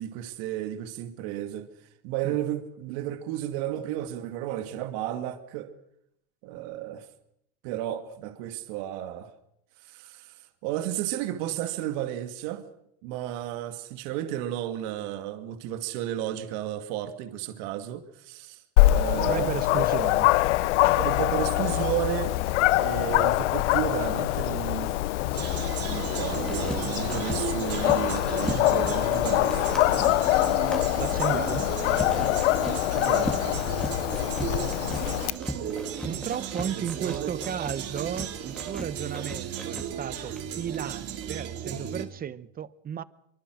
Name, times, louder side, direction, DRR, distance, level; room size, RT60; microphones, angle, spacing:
voice 1, 0.0-1.7 2.0-5.7 6.4-7.1 7.6-9.3 9.8-12.6 13.0-18.6 18.9-19.5 21.0-22.3 22.8-25.0 25.8-29.7 32.8-33.4 36.8-37.3, right 12 dB, 65° right, 2.4 m, -33 dB
Dog, 18.8-35.3, left 17 dB, 80° left, 0.8 m, -24 dB
voice 2, 19.3-20.3 31.0-31.7 36.0-43.0, right 9 dB, 25° right, 0.9 m, -34 dB
sound 1, 25.3-42.0, right 9 dB, 40° right, 3.4 m, -35 dB
sound 2, 26.2-41.3, equal, ahead, 3.1 m, -40 dB
24.0 x 24.0 x 6.4 m
supercardioid pair, 120°, 35 cm